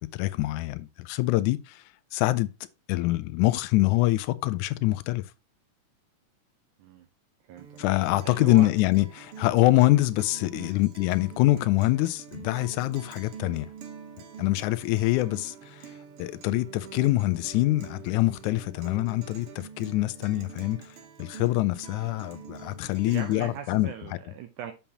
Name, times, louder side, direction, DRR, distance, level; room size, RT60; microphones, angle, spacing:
voice 1, 0.0-1.8 2.1-2.5 2.9-5.3 7.8-13.7 14.4-15.9 16.2-23.9, left 18 dB, 80° left, 1.9 m, -25 dB
voice 2, 7.4-7.8 8.2-8.7 10.5-10.7 22.0-22.2 23.1-24.7, right 9 dB, 75° right, 2.1 m, -40 dB
Guitar, 7.6-23.6, right 7 dB, 60° right, 1.6 m, -46 dB
7.1 x 7.0 x 2.9 m
omnidirectional pair, 3.6 m